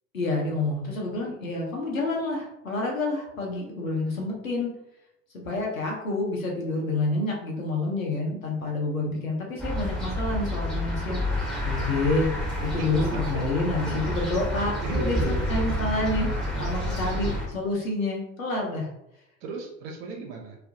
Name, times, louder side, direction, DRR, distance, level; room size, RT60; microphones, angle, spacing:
voice 1, 0.1-4.7 5.3-12.3 12.6-16.3 16.6-18.9, left 2 dB, 90° left, -1 dB, 0.6 m, -28 dB
sound 1, 9.6-17.5, equal, ahead, 1.0 m, -29 dB
voice 2, 12.8-13.7 14.1-14.3 14.8-16.2 16.5-17.4 19.4-20.6, right 3 dB, 55° right, 1 dB, 0.6 m, -37 dB
2.3 x 2.0 x 2.7 m, 0.82 s
figure-of-eight pair, 65°, 39 cm